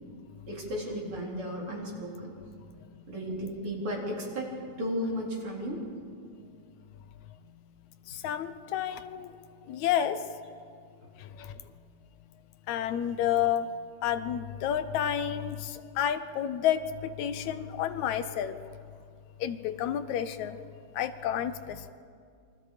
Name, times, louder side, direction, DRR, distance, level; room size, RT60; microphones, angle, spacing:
voice 1, 0.5-2.3 3.1-4.5 4.8-5.8, equal, 45° right, -3 dB, 4.9 m, -34 dB
voice 2, 8.1-9.3 9.7-10.2 11.2-11.6 12.7-13.7 14.0-18.6 19.4-20.6 20.9-21.9, left 10 dB, 80° left, 11 dB, 2.1 m, -30 dB
28.0 x 23.5 x 5.1 m, 2.2 s
omnidirectional pair, 3.3 m